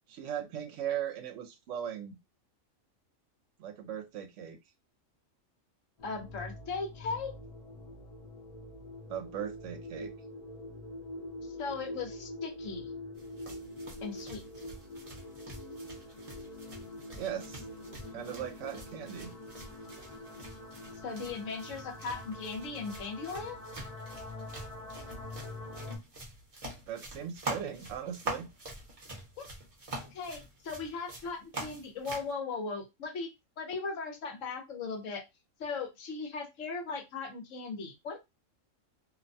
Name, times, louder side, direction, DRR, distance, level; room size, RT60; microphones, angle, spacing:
voice 1, 0.1-2.2 3.6-4.6 9.1-10.1 17.1-17.6 18.1-19.3 26.9-28.5, right 9 dB, 75° right, 7 dB, 0.9 m, -38 dB
voice 2, 6.0-7.3 11.6-12.9 14.0-14.4 21.0-23.6 30.0-33.3 33.6-35.2 35.6-38.2, left 4 dB, 75° left, 3 dB, 1.1 m, -38 dB
sound 1, 6.0-26.0, left 1 dB, 35° left, 0.7 m, -45 dB
sound 2, 13.2-32.3, right 2 dB, 30° right, 0.8 m, -45 dB
2.7 x 2.1 x 2.6 m, 0.22 s
omnidirectional pair, 1.3 m